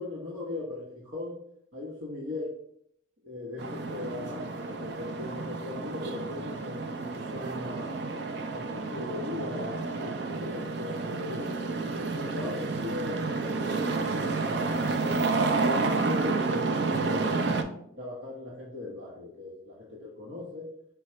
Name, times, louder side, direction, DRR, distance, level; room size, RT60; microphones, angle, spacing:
voice 1, 0.0-1.4 1.7-2.5 3.2-8.1 8.5-11.5 12.1-15.3 15.6-20.7, left 2 dB, 75° right, -5 dB, 1.0 m, -39 dB
sound 1, 3.6-17.6, right 3 dB, 60° right, 0.4 m, -30 dB
4.8 x 2.2 x 4.2 m, 0.69 s
head